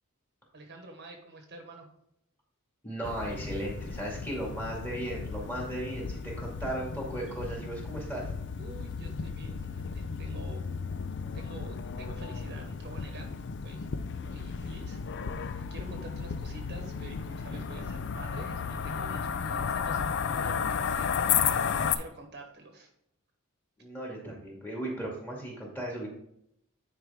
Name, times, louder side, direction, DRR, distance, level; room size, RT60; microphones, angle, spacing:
voice 1, 0.5-1.9 8.6-10.7 11.3-13.3 13.6-13.9 14.2-15.0 15.3-21.2 21.9-22.9, right 2 dB, 50° right, 3 dB, 1.1 m, -47 dB
voice 2, 2.8-8.3 23.8-26.1, right 1 dB, 10° left, -3 dB, 2.2 m, -36 dB
sound 1, 3.0-21.9, left 6 dB, 55° left, 0.4 m, -34 dB
9.5 x 4.6 x 3.6 m, 0.77 s
head